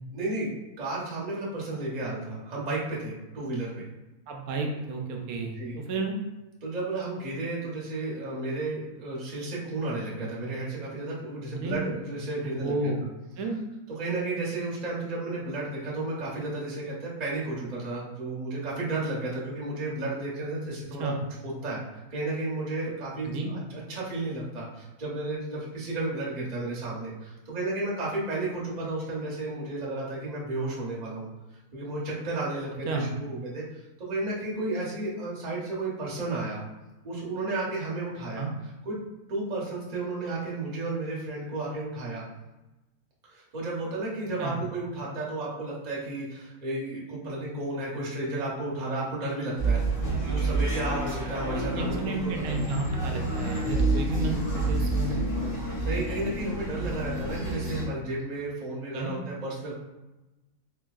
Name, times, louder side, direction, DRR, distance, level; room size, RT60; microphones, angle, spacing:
voice 1, 0.1-0.5 0.8-3.9 5.6-5.8 6.6-12.9 13.9-21.1 21.4-21.8 22.1-31.3 31.7-33.6 34.0-36.6 37.0-39.0 39.3-42.2 43.3-49.8 50.2-52.7 55.7-59.7, right 2 dB, 35° right, -5 dB, 0.8 m, -33 dB
voice 2, 4.3-6.2 11.5-11.8 12.6-13.0 13.4-13.6 21.0-21.2 23.3-23.5 32.9-33.1 38.3-38.5 44.4-44.6 51.5-55.6 58.9-59.2, right 2 dB, 80° right, 2 dB, 1.1 m, -32 dB
sound 1, 49.6-57.8, right 2 dB, 80° left, 1.6 m, -29 dB
3.8 x 2.7 x 2.3 m, 1.0 s
omnidirectional pair, 1.6 m